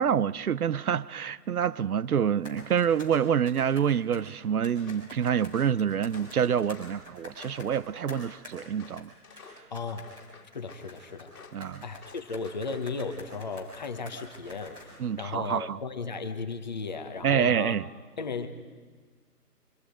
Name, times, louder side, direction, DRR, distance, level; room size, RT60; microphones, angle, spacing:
voice 1, 0.0-9.1 11.5-11.8 15.0-15.8 17.2-17.8, right 8 dB, 65° right, 0.6 m, -27 dB
sound 1, 2.4-4.2 4.6-8.6 9.0-9.1 9.4-9.5 9.7-15.0 15.4-15.5, left 2 dB, 10° right, 4.8 m, -48 dB
Walk footsteps, 4.8-5.1 5.5-7.0 7.4-9.7 10.0-10.9 11.3-11.6 12.0-12.9 13.3-13.7, left 5 dB, 60° left, 2.0 m, -52 dB
voice 2, 9.7-10.1 10.5-11.3 11.8-17.8 18.2-18.5, left 4 dB, 30° left, 1.0 m, -35 dB
27.5 x 24.5 x 5.0 m
hypercardioid pair, 170°, 47 cm